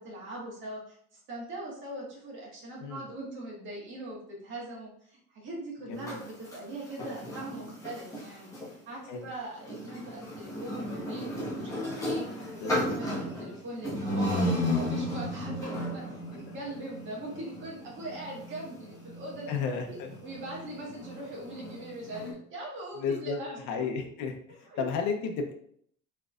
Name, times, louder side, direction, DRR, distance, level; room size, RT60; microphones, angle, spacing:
voice 1, 0.0-19.6 19.9-20.0 20.2-23.9 24.7-24.8, right 1 dB, 40° right, -4 dB, 1.7 m, -41 dB
voice 2, 5.9-6.2 9.1-9.3 12.5-12.7 16.5-16.6 19.5-20.1 23.0-23.4 23.7-25.5, left 5 dB, 70° left, 4 dB, 0.9 m, -33 dB
sound 1, 5.9-8.7 9.6-22.3, left 1 dB, 10° left, 1.4 m, -35 dB
4.6 x 4.5 x 2.5 m, 0.65 s
cardioid pair, 180°, 31 cm